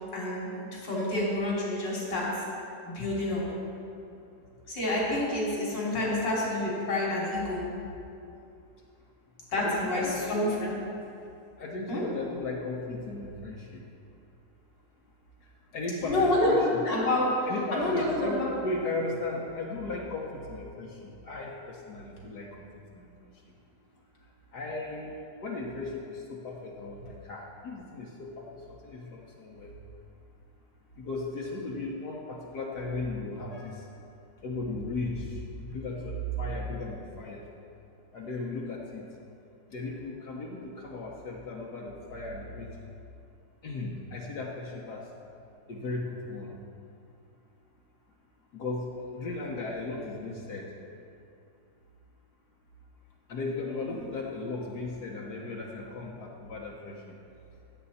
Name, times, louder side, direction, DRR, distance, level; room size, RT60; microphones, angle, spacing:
voice 1, 0.1-2.3 2.9-3.4 4.7-7.6 9.5-10.7 11.9-12.0 16.0-16.5 16.8-17.3 17.7-17.9 18.2-18.5, left 1 dB, 90° left, -5 dB, 3.9 m, -28 dB
voice 2, 9.5-10.1 11.6-13.8 15.7-16.8 17.5-22.5 22.9-23.0 24.5-25.2 25.4-28.4 28.8-29.7 31.0-33.8 34.4-35.2 35.6-37.4 38.1-39.0 39.7-42.9 43.6-45.0 45.7-46.5 48.5-50.7 53.3-56.9, left 2 dB, 65° left, -3 dB, 1.6 m, -36 dB
16.5 x 8.3 x 4.2 m, 2.6 s
omnidirectional pair, 1.9 m